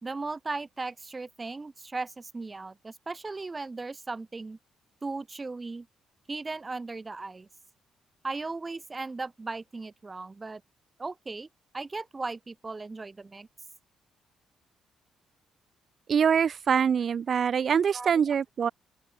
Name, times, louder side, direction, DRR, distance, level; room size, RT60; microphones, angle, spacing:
voice 1, 0.0-4.6 5.0-5.9 6.3-7.5 8.2-10.6 11.0-11.5 11.7-13.5 17.6-18.3, right 3 dB, 25° right, 1.9 m, -37 dB
voice 2, 16.1-18.7, right 7 dB, 50° right, 0.7 m, -24 dB
open air
cardioid pair, 90°, 0 cm